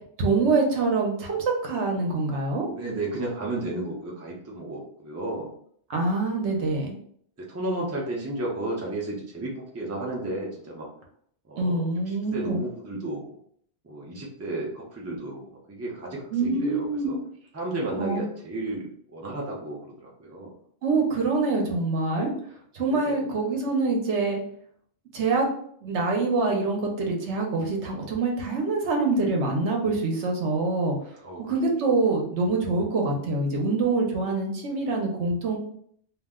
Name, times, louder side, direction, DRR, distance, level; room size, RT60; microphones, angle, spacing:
voice 1, 0.2-2.7 5.9-6.9 11.6-12.6 16.3-17.1 18.0-18.2 20.8-22.3 22.7-24.4 25.1-25.5 25.8-30.9 31.5-35.6, right 3 dB, 75° right, 1 dB, 1.0 m, -25 dB
voice 2, 2.7-5.5 6.5-6.6 7.4-10.9 11.5-13.4 13.8-15.4 15.7-17.2 17.5-18.9 19.1-20.5 22.9-23.3 31.2-31.4, right 2 dB, 20° right, -3 dB, 0.5 m, -33 dB
2.6 x 2.1 x 3.5 m, 0.62 s
omnidirectional pair, 1.2 m